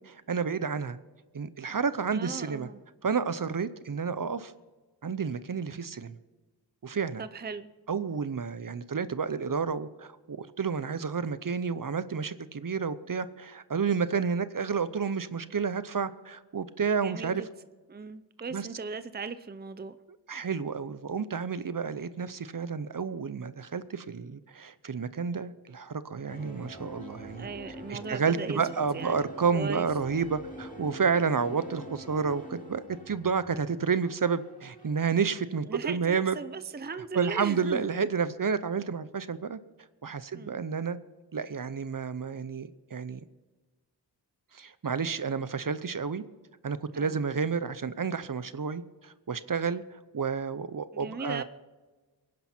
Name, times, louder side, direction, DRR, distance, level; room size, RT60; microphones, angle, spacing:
voice 1, 0.1-1.0 1.3-2.7 3.0-4.5 5.0-6.2 6.8-7.2 7.9-17.4 18.5-18.7 20.3-27.5 27.9-36.4 37.1-39.6 40.0-41.0 41.3-43.2 44.5-46.2 46.6-51.4, right 5 dB, 50° right, 0.8 m, -30 dB
voice 2, 2.1-2.8 7.2-7.7 10.8-11.0 17.0-17.5 17.9-20.0 27.4-29.9 35.7-37.8 40.3-40.6 46.9-47.2 50.9-51.4, right 4 dB, 25° right, 0.6 m, -38 dB
sound 1, 26.3-34.9, right 1 dB, 20° left, 2.8 m, -45 dB
23.5 x 10.5 x 4.4 m
wide cardioid pair, 70°, 41 cm